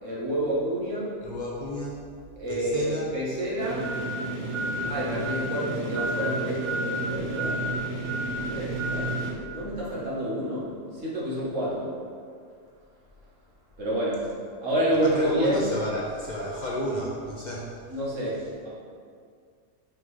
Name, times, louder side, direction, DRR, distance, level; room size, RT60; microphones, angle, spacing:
voice 1, 0.0-1.1 2.4-3.8 4.9-7.6 8.5-9.1 9.5-10.7 11.0-11.9 13.8-14.2 14.6-15.6 17.9-18.7, right 1 dB, 70° right, -6 dB, 1.8 m, -28 dB
voice 2, 1.2-2.0 2.5-3.1 15.0-17.7, equal, 40° left, -4 dB, 0.8 m, -32 dB
sound 1, 3.6-9.3, right 1 dB, 45° right, 1.6 m, -30 dB
5.6 x 3.8 x 4.9 m, 2.1 s
omnidirectional pair, 1.3 m